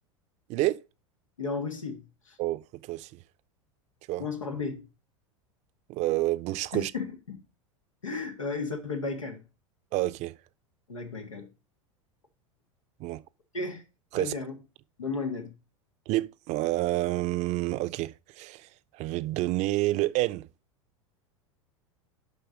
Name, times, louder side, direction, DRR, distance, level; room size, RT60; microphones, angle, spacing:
voice 1, 0.5-0.8 2.4-2.6 2.9-3.1 4.1-4.2 5.9-6.9 9.9-10.3 13.0-13.2 14.1-14.3 16.1-18.7 19.0-20.5, right 17 dB, 45° right, 0.6 m, -28 dB
voice 2, 1.4-2.4 4.2-4.9 6.7-7.4 8.0-9.4 10.9-11.5 13.5-13.8 14.1-14.5 15.0-15.5, left 4 dB, 90° left, 1.7 m, -34 dB
7.0 x 5.7 x 5.0 m
hypercardioid pair, 90°, 16 cm